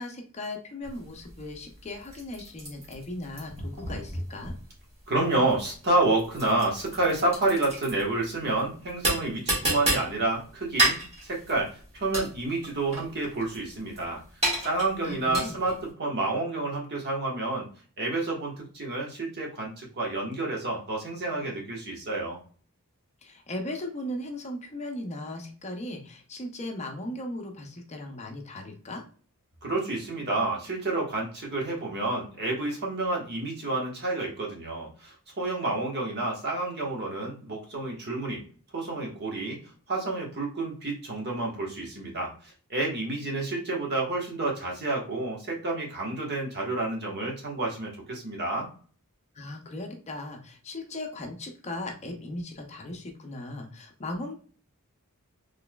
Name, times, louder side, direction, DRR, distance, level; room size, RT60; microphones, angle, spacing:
voice 1, 0.0-4.5 15.0-15.6 23.2-29.0 49.4-54.4, left 1 dB, 30° left, 3 dB, 0.5 m, -37 dB
sound 1, 0.8-15.9, right 1 dB, 30° right, 1.6 m, -32 dB
voice 2, 5.1-11.0 11.2-14.2 14.6-17.7 18.0-22.4 29.6-38.4 38.7-39.6 39.9-48.7, right 2 dB, 50° right, -2 dB, 1.2 m, -29 dB
4.0 x 3.2 x 2.2 m, 0.42 s
head